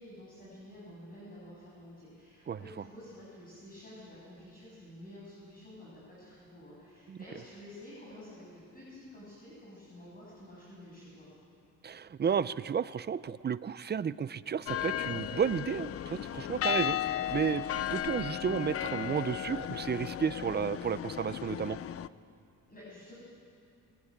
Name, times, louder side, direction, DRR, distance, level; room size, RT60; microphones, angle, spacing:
voice 1, 0.0-11.3 22.7-23.1, left 1 dB, 30° left, -7 dB, 7.9 m, -50 dB
voice 2, 11.8-17.6 17.9-21.8, right 7 dB, 35° right, 16 dB, 0.6 m, -32 dB
sound 1, 14.7-22.1, left 11 dB, 45° left, 0.6 m, -35 dB
23.0 x 18.0 x 8.7 m, 2.7 s
cardioid pair, 110°, 31 cm